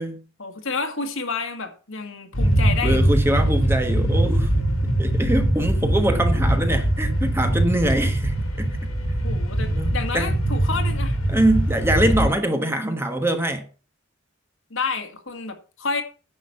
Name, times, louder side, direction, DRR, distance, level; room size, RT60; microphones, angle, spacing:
voice 1, 0.4-3.0 5.3-5.5 9.2-11.2 14.7-16.0, left 4 dB, 70° left, 1.9 m, -29 dB
sound 1, 2.3-12.3, right 1 dB, 90° left, 3.2 m, -22 dB
voice 2, 2.8-4.5 5.0-8.8 9.6-10.3 11.3-13.6, right 1 dB, 10° right, 1.3 m, -23 dB
10.0 x 6.3 x 7.0 m
head